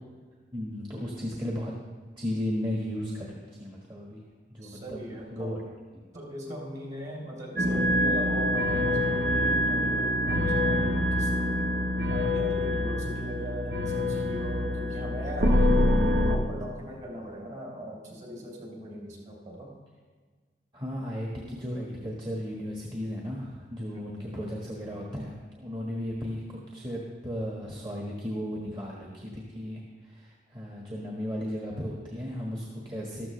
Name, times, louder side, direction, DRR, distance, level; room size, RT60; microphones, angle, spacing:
voice 1, 0.5-1.7 2.2-4.2 4.5-5.0 5.3-5.6 5.9-6.0 20.7-33.3, equal, 25° right, -3 dB, 1.5 m, -35 dB
voice 2, 4.6-5.6 6.1-11.7 12.1-19.7 23.8-24.4, equal, 45° right, -1 dB, 3.5 m, -40 dB
sound 1, 7.6-16.4, left 1 dB, 80° right, 1.3 m, -25 dB
13.5 x 13.5 x 3.2 m, 1.5 s
head